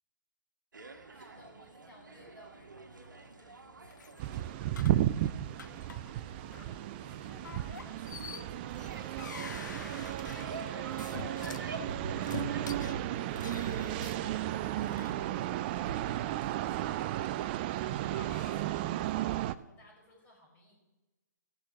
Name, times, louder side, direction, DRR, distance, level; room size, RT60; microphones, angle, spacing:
sound 1, 0.7-19.0, right 3 dB, 80° right, 1.5 m, -47 dB
voice 1, 1.1-4.2 5.6-20.7, left 1 dB, 15° left, -2 dB, 5.4 m, -62 dB
sound 2, 3.8-5.1 5.6-6.2 6.5-6.7 7.4-11.7 12.2-15.1 15.8-16.0 17.6-18.6, left 7 dB, 75° left, 0.5 m, -47 dB
sound 3, 4.2-19.5, right 13 dB, 30° right, 0.4 m, -34 dB
17.0 x 6.4 x 5.8 m, 1.1 s
hypercardioid pair, 140°, 10 cm